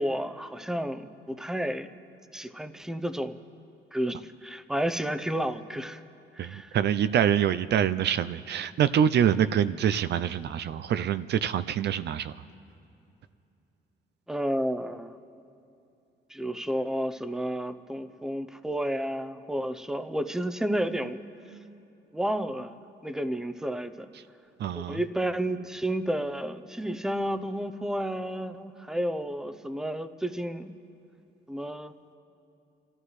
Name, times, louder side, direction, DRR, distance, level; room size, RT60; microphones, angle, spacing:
voice 1, 0.0-1.9 2.3-3.4 3.9-6.0 6.3-6.8 14.3-15.1 16.3-21.2 21.5-21.6 22.1-22.8 23.0-24.1 24.7-30.7 31.5-31.9, right 1 dB, 5° right, 9 dB, 0.7 m, -31 dB
voice 2, 6.4-12.3 24.6-25.0, right 9 dB, 60° right, 13 dB, 0.4 m, -25 dB
28.0 x 13.5 x 3.2 m, 2.7 s
cardioid pair, 90°, 20 cm